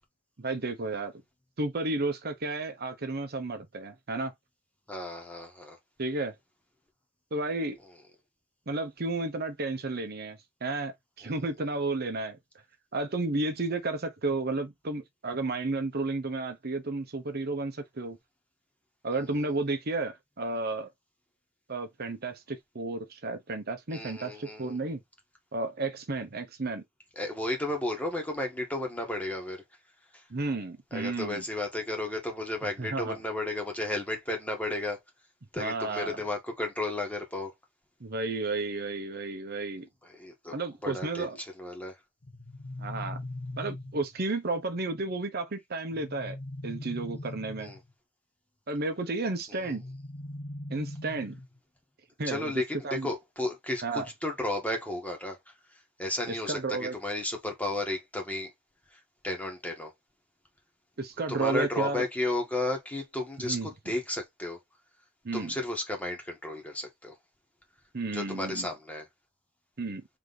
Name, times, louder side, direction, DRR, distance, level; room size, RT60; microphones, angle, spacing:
voice 1, 0.4-1.1 1.6-4.3 6.0-6.3 7.3-7.8 8.7-12.4 12.9-18.2 19.0-20.9 21.7-25.0 25.5-26.8 30.3-31.4 32.8-33.2 35.6-36.2 38.0-39.9 40.5-41.4 42.8-43.2 43.6-46.4 46.6-47.7 48.7-49.8 50.7-51.4 52.2-52.5 52.8-53.1 53.8-54.1 56.3-57.0 61.0-62.0 63.4-63.7 65.2-65.5 67.9-68.7 69.8-70.0, right 2 dB, 50° right, 0.8 m, -32 dB
voice 2, 4.9-5.8 11.2-11.3 23.9-24.8 27.1-29.6 30.9-35.0 35.5-37.5 40.0-40.5 40.8-41.9 47.6-47.8 49.5-49.7 52.2-55.4 56.0-58.5 59.2-59.9 61.3-64.6 65.3-67.1 68.1-69.1, left 1 dB, 5° left, 1.4 m, -33 dB
sound 1, 42.2-44.2 45.9-47.9 49.6-51.6, left 1 dB, 55° left, 0.8 m, -40 dB
3.4 x 3.4 x 3.9 m
head